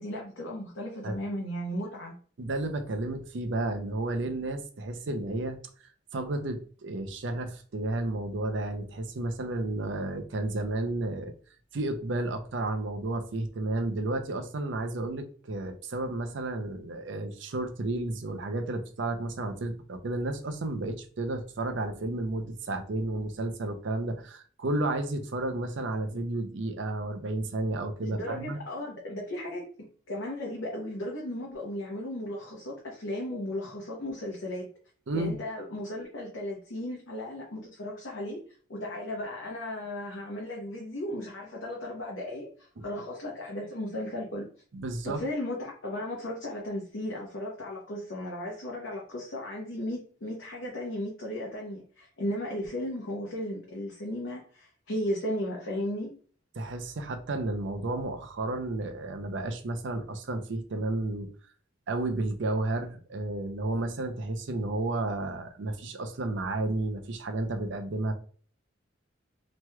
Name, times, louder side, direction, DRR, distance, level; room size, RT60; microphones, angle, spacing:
voice 1, 0.0-2.1 28.0-29.7 30.1-34.7 35.1-38.4 38.7-44.5 45.0-56.1, left 1 dB, 80° left, -2 dB, 0.8 m, -35 dB
voice 2, 2.4-5.6 6.1-11.3 11.7-28.6 35.1-35.4 42.8-42.9 44.7-45.2 56.5-61.3 61.9-68.1, right 2 dB, 65° right, 7 dB, 0.5 m, -32 dB
3.1 x 3.0 x 2.2 m, 0.43 s
head